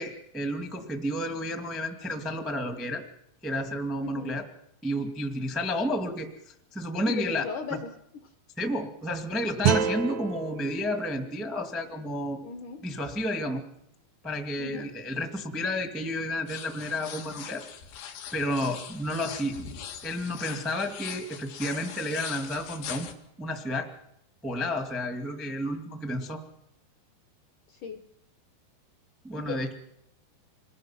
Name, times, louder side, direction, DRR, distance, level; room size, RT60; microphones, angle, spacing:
voice 1, 0.0-3.0 3.4-4.4 4.8-7.4 7.7-7.8 8.6-12.4 12.8-13.6 14.2-17.6 18.3-19.6 20.0-23.1 23.4-23.9 24.4-26.4 29.2-29.7, left 1 dB, ahead, 5 dB, 0.4 m, -31 dB
voice 2, 4.0-4.4 7.1-7.9 12.4-12.9 14.6-14.9 27.7-28.0 29.4-29.7, left 6 dB, 70° left, 7 dB, 1.9 m, -37 dB
sound 1, 9.6-12.7, right 8 dB, 80° right, 1.6 m, -30 dB
sound 2, 16.5-23.1, left 8 dB, 90° left, 4.2 m, -41 dB
27.0 x 21.5 x 6.0 m, 0.79 s
omnidirectional pair, 5.1 m